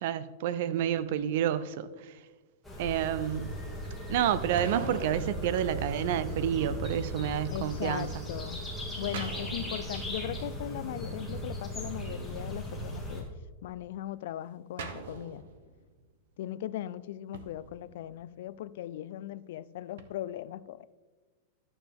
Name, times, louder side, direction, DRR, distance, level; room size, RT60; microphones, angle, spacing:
voice 1, 0.0-1.9 2.8-3.5 4.1-8.1, right 10 dB, 55° right, 0.5 m, -29 dB
sound 1, 0.7-1.6 4.6-6.5 9.1-10.7 14.8-16.1 17.3-18.5 20.0-20.1, right 5 dB, 75° right, 0.9 m, -43 dB
sound 2, 2.6-13.2, equal, ahead, 1.8 m, -37 dB
voice 2, 7.5-8.6 9.0-13.3 13.6-15.4 16.4-20.9, left 12 dB, 65° left, 0.3 m, -39 dB
11.0 x 7.0 x 3.5 m
supercardioid pair, 155°, 0 cm